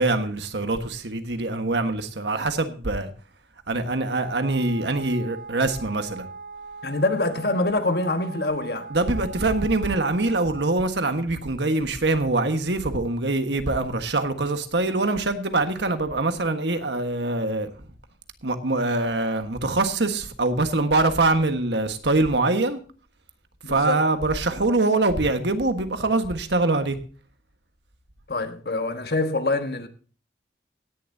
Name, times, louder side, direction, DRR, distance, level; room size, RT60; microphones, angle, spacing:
voice 1, 0.0-3.1 3.7-6.3 8.9-17.7 18.4-22.8 23.7-27.0, right 2 dB, 85° right, 1.5 m, -24 dB
Wind instrument woodwind instrument, 4.2-10.8, right 4 dB, 50° right, 1.8 m, -40 dB
voice 2, 6.8-8.9 23.6-24.0 28.3-29.9, left 2 dB, 60° left, 1.3 m, -25 dB
17.0 x 11.0 x 2.7 m
head